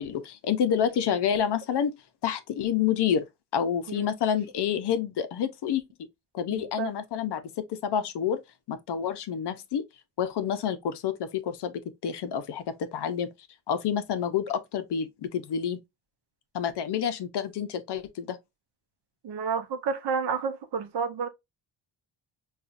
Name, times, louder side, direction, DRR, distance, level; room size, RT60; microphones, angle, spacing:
voice 1, 0.0-1.9 2.2-3.2 3.5-5.8 6.3-7.4 7.7-8.4 8.7-9.8 10.2-11.7 12.0-12.6 12.9-13.3 13.7-15.8 16.5-18.4, left 8 dB, 55° left, 0.6 m, -28 dB
voice 2, 6.5-6.9 19.2-21.3, right 6 dB, 55° right, 0.7 m, -30 dB
5.3 x 2.4 x 2.4 m
wide cardioid pair, 175°, 50 cm